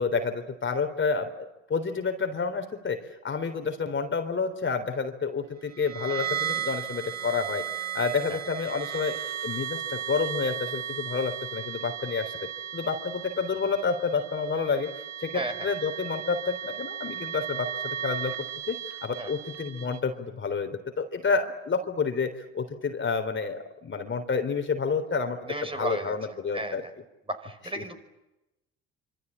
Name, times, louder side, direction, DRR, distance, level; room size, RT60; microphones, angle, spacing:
voice 1, 0.0-12.3 12.7-14.9 15.2-26.8 27.8-27.9, left 5 dB, 35° left, 7 dB, 3.8 m, -29 dB
sound 1, 5.7-20.0, right 10 dB, 50° right, 2.7 m, -35 dB
voice 2, 15.3-15.7 19.2-19.3 25.5-26.1 26.5-26.9 27.3-28.0, right 2 dB, 15° right, 6 dB, 5.5 m, -34 dB
26.5 x 25.5 x 8.7 m, 0.94 s
hypercardioid pair, 55°, 34 cm